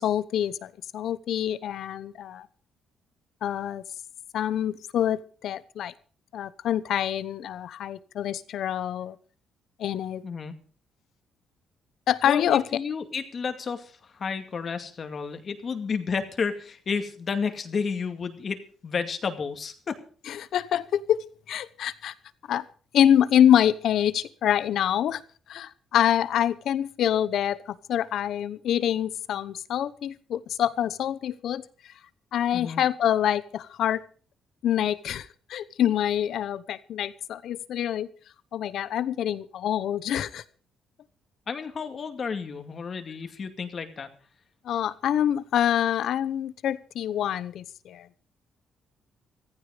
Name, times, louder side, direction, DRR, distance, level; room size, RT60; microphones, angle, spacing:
voice 1, 0.0-2.5 3.4-3.8 4.3-5.9 6.3-9.2 9.8-10.2 12.1-12.6 20.3-21.2 21.5-22.1 22.5-22.6 22.9-25.2 25.5-27.6 27.9-31.6 32.3-34.0 34.6-38.1 38.5-40.4 44.6-48.1, left 10 dB, 75° left, 16 dB, 0.9 m, -26 dB
voice 2, 10.2-10.6 12.2-20.0 32.5-32.8 41.5-44.1, left 5 dB, 45° left, 7 dB, 2.3 m, -31 dB
15.0 x 15.0 x 5.1 m, 0.42 s
cardioid pair, 90°, 0 cm